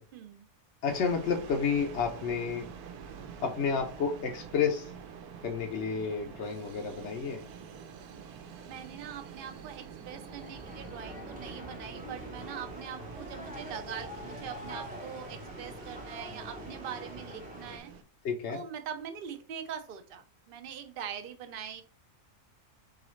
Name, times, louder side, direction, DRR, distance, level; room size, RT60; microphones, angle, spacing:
voice 1, 0.1-0.5 8.7-17.9 18.5-21.8, right 8 dB, 55° right, 8 dB, 0.6 m, -42 dB
voice 2, 0.8-2.7 3.4-4.9 5.4-7.4 18.2-18.6, left 6 dB, 60° left, 2 dB, 0.8 m, -30 dB
sound 1, 0.9-18.0, right 7 dB, 85° right, 1.1 m, -47 dB
sound 2, 10.1-17.8, equal, 10° right, 0.5 m, -44 dB
3.9 x 3.9 x 3.1 m, 0.37 s
omnidirectional pair, 1.6 m